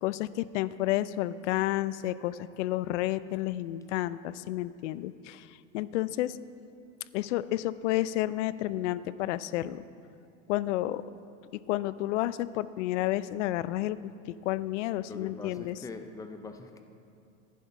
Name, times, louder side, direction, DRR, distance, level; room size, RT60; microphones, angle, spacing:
voice 1, 0.0-5.5 5.7-6.4 7.1-9.8 10.5-11.0 11.7-14.0 14.4-15.8, left 15 dB, 80° left, 17 dB, 0.5 m, -30 dB
voice 2, 15.1-16.8, left 4 dB, 10° left, 7 dB, 0.3 m, -42 dB
11.0 x 10.5 x 4.7 m, 2.5 s
supercardioid pair, 135°, 35 cm